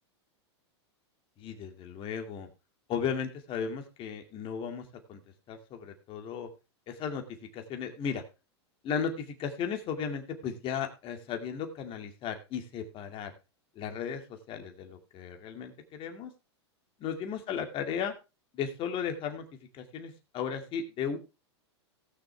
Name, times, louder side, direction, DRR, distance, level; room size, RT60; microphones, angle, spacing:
voice 1, 1.4-2.5 2.9-5.2 5.5-6.5 6.9-7.2 7.5-8.2 8.8-13.3 13.8-16.3 17.0-18.1 18.5-19.5 19.7-21.2, left 7 dB, 35° left, 5 dB, 2.3 m, -35 dB
18.5 x 6.5 x 3.4 m, 0.28 s
hypercardioid pair, 115°, 15 cm